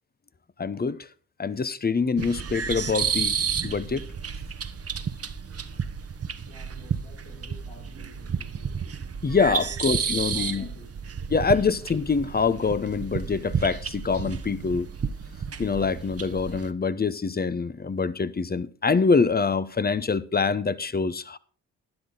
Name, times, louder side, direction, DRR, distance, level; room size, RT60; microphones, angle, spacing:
voice 1, 0.6-1.0 1.4-3.3 3.6-4.0 9.2-10.7 11.3-14.9 15.6-21.4, left 5 dB, 25° left, 0.9 m, -25 dB
sound 1, 2.2-16.7, right 6 dB, 40° right, 1.1 m, -31 dB
voice 2, 6.5-8.8 9.5-10.9, left 3 dB, 85° left, 5.8 m, -50 dB
12.5 x 10.5 x 3.9 m
supercardioid pair, 50°, 38 cm